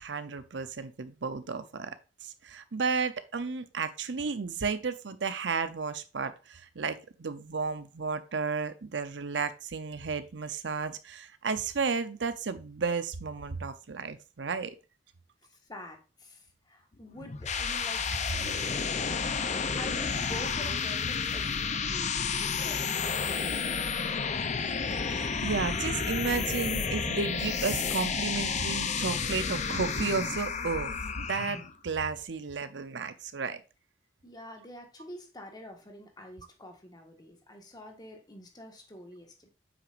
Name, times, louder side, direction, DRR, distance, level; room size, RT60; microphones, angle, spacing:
voice 1, 0.0-1.9 2.2-14.7 25.1-33.6, right 5 dB, 80° right, 0.7 m, -33 dB
voice 2, 15.5-18.0 18.3-18.7 19.4-24.3 34.2-39.5, left 1 dB, 25° left, 1.6 m, -47 dB
sound 1, 17.2-31.7, left 5 dB, 40° left, 0.6 m, -31 dB
8.1 x 6.0 x 2.6 m
head